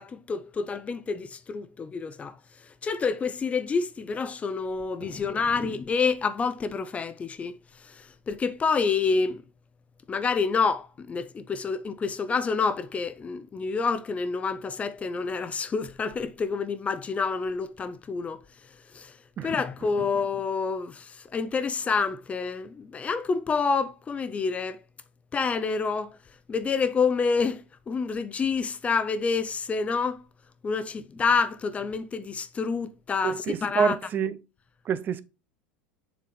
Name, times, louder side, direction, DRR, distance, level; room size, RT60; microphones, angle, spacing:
voice 1, 0.0-2.4 2.8-7.5 7.8-9.4 10.1-18.4 18.9-19.1 19.4-24.8 25.3-26.2 26.5-30.2 30.6-33.9, left 5 dB, 25° left, 0.6 m, -28 dB
voice 2, 33.2-34.4 34.8-35.2, right 7 dB, 35° right, 0.5 m, -27 dB
7.4 x 3.4 x 3.9 m
hypercardioid pair, 90°, 5 cm